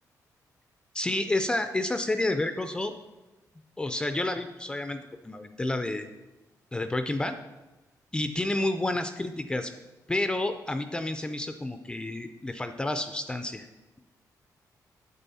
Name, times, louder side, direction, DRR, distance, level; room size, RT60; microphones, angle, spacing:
voice 1, 0.9-2.9 3.8-5.0 5.2-6.1 6.7-7.4 8.1-9.7 10.1-13.7, left 2 dB, 10° left, 8 dB, 0.3 m, -30 dB
9.1 x 7.5 x 4.1 m, 1.1 s
wide cardioid pair, 165°, 7 cm